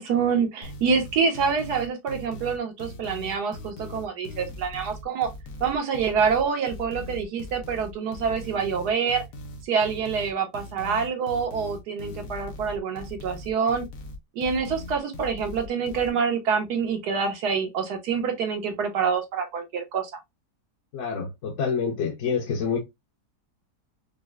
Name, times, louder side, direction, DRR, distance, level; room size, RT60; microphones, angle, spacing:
voice 1, 0.0-5.3 5.6-9.2 9.6-13.9 14.3-20.1, right 6 dB, 80° right, 1.5 m, -26 dB
sound 1, 0.6-16.1, left 2 dB, 85° left, 1.4 m, -40 dB
voice 2, 20.9-22.8, left 6 dB, 55° left, 1.0 m, -27 dB
5.1 x 2.0 x 2.3 m
omnidirectional pair, 1.7 m